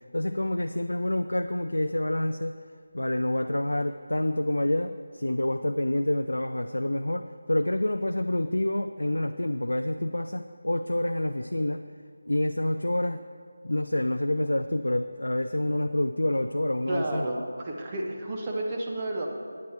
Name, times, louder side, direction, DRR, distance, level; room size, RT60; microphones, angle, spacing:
voice 1, 0.1-2.6 2.9-11.8 12.3-13.2 13.6-17.3, left 1 dB, 70° left, 7 dB, 0.4 m, -27 dB
voice 2, 16.9-19.3, right 1 dB, 20° right, -1 dB, 1.1 m, -31 dB
16.0 x 9.3 x 3.0 m, 2.1 s
figure-of-eight pair, 160°, 0 cm